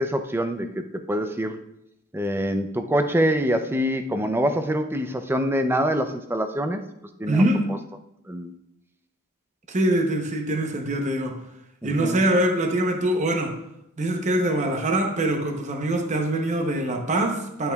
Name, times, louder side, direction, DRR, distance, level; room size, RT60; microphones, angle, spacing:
voice 1, 0.0-1.6 2.1-6.8 7.2-7.4 8.3-8.5 11.8-12.2, equal, 10° right, 7 dB, 0.4 m, -25 dB
voice 2, 7.3-7.7 9.7-11.4 11.8-13.5 14.0-17.7, right 1 dB, 35° right, 4 dB, 0.8 m, -23 dB
10.5 x 5.5 x 2.3 m, 0.83 s
head